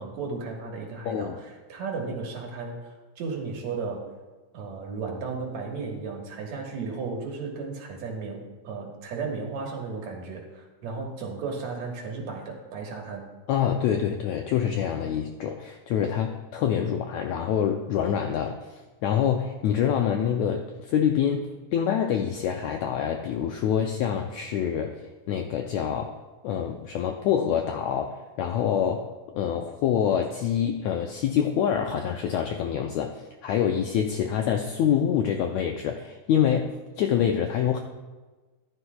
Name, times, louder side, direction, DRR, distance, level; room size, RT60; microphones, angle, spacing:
voice 1, 0.0-4.1 4.5-13.2, right 4 dB, 65° right, 0 dB, 2.4 m, -34 dB
voice 2, 1.0-1.3 13.5-26.2 26.4-37.8, left 8 dB, 80° left, 4 dB, 1.6 m, -26 dB
14.0 x 11.0 x 2.3 m, 1.3 s
omnidirectional pair, 3.8 m